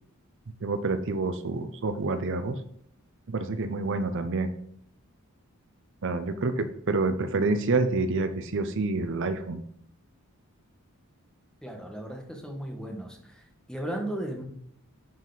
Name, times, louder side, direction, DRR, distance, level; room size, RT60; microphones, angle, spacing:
voice 1, 0.6-2.6 3.3-4.5 6.0-9.6, right 3 dB, 60° right, 10 dB, 0.6 m, -28 dB
voice 2, 11.6-13.1 13.7-14.4, right 1 dB, 5° left, 2 dB, 1.3 m, -35 dB
11.5 x 4.6 x 4.0 m, 0.69 s
head